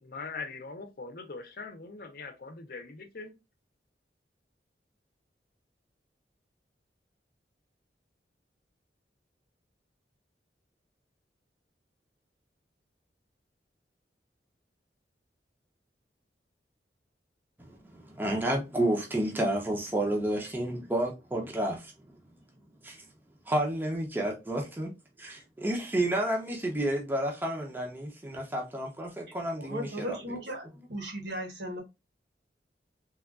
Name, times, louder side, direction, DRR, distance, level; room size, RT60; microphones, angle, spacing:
voice 1, 0.0-3.3, left 4 dB, 55° left, 0.7 m, -41 dB
voice 2, 17.6-21.9 22.8-23.0 23.5-24.9 25.2-30.2, right 1 dB, 10° right, 0.6 m, -30 dB
voice 3, 29.6-31.8, equal, 75° right, 1.2 m, -37 dB
3.4 x 2.3 x 2.3 m
head